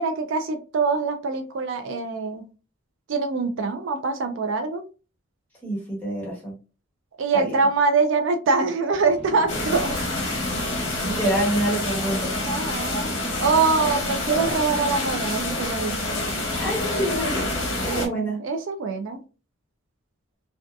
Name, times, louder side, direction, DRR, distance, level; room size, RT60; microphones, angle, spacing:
voice 1, 0.0-2.5 3.1-4.8 7.2-10.0 12.4-13.1 13.4-16.2 17.9-19.2, right 4 dB, 65° right, 7 dB, 0.3 m, -24 dB
voice 2, 5.6-6.5 7.3-7.6 11.0-12.4 16.6-17.5 17.8-18.4, right 1 dB, 10° left, -5 dB, 1.0 m, -26 dB
Boom, 8.9-12.1, equal, 30° left, 0.6 m, -41 dB
sound 1, 9.5-18.1, left 2 dB, 60° left, 0.9 m, -27 dB
2.6 x 2.3 x 2.2 m, 0.34 s
head